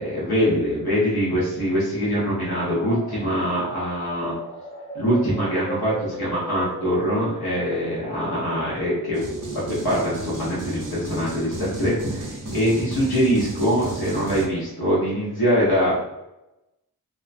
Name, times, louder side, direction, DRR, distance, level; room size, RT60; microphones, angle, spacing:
voice 1, 0.0-4.3 4.9-9.2 9.5-15.9, equal, 70° left, -8 dB, 1.1 m, -23 dB
sound 1, 2.0-13.7, equal, 15° left, 0.5 m, -38 dB
sound 2, 9.1-14.5, right 2 dB, 50° right, 0.7 m, -34 dB
2.7 x 2.2 x 2.6 m, 0.94 s
wide cardioid pair, 50°, 39 cm